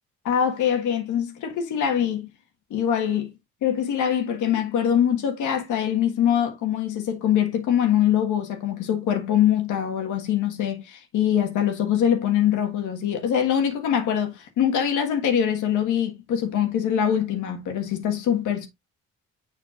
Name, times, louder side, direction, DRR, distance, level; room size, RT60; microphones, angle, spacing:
voice 1, 0.2-2.3 2.7-3.3 3.6-18.7, left 9 dB, 80° left, 1.5 m, -23 dB
6.9 x 5.9 x 2.4 m
cardioid pair, 90°, 30 cm